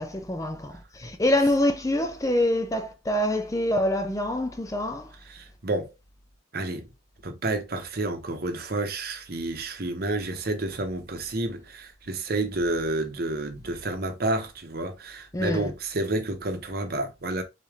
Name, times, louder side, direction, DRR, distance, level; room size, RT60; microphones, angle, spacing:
voice 1, 0.0-5.1 15.3-15.7, left 1 dB, 15° left, 0.5 m, -25 dB
voice 2, 5.3-5.9 6.5-6.9 7.2-17.4, right 2 dB, 50° right, 0.9 m, -30 dB
4.1 x 3.4 x 3.5 m
head